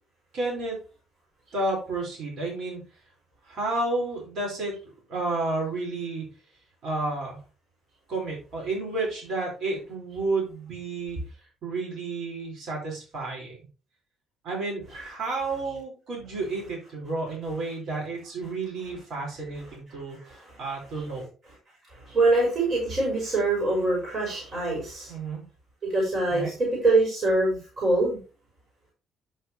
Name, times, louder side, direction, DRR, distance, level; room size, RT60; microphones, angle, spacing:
voice 1, 0.3-0.8 1.5-2.8 3.4-6.3 6.8-7.4 8.1-11.2 11.6-13.6 14.4-21.3 25.1-25.4 26.3-26.5, right 2 dB, 65° right, -2 dB, 4.7 m, -31 dB
voice 2, 19.9-20.6 21.9-25.1 25.9-28.2, right 2 dB, 45° right, -2 dB, 5.0 m, -24 dB
11.0 x 6.1 x 3.1 m, 0.34 s
cardioid pair, 105°, 0 cm